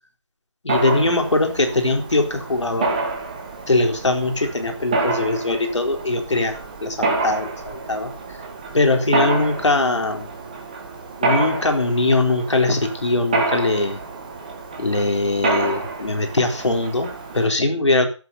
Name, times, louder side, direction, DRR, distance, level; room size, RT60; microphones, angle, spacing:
voice 1, 0.6-2.9 3.7-8.1 8.7-10.3 11.2-14.0 14.8-18.1, left 2 dB, 65° left, 4 dB, 4.1 m, -21 dB
Mechanisms, 0.7-17.5, right 3 dB, 15° right, 1.6 m, -28 dB
15.0 x 8.2 x 5.7 m, 0.37 s
figure-of-eight pair, 175°, 16 cm